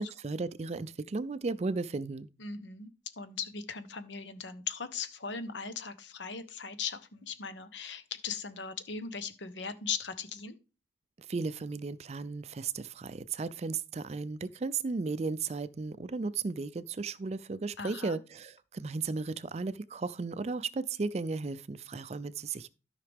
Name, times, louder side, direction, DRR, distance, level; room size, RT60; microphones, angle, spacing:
voice 1, 0.0-2.3 11.3-22.7, right 4 dB, 35° right, 0.4 m, -35 dB
voice 2, 2.4-2.9 3.2-10.6 17.8-18.2, left 6 dB, 85° left, 1.0 m, -39 dB
12.5 x 5.7 x 3.5 m
head